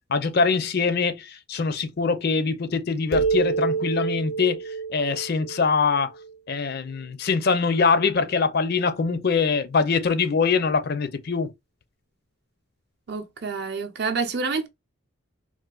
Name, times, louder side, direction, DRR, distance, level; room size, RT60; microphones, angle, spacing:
voice 1, 0.1-4.6 4.9-6.1 6.5-11.5, left 5 dB, 45° left, 0.4 m, -23 dB
sound 1, 3.1-6.6, right 5 dB, 85° left, 0.7 m, -28 dB
voice 2, 13.1-14.7, right 4 dB, 50° right, 0.6 m, -28 dB
3.7 x 2.6 x 2.3 m
head